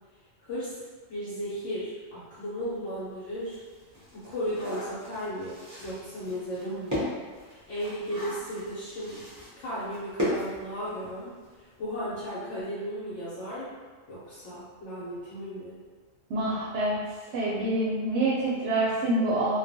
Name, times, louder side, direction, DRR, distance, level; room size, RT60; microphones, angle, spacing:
voice 1, 0.4-0.8 1.1-3.6 4.1-7.1 7.4-9.2 9.6-13.8 14.1-15.8, equal, 70° left, -11 dB, 1.0 m, -35 dB
sound 1, 2.7-2.8 3.2-11.3 11.6-11.7 12.0-12.2, left 1 dB, 20° right, 0.5 m, -36 dB
voice 2, 16.3-17.0 17.3-19.6, right 1 dB, 70° right, -6 dB, 0.8 m, -26 dB
2.3 x 2.2 x 2.6 m, 1.5 s
omnidirectional pair, 1.3 m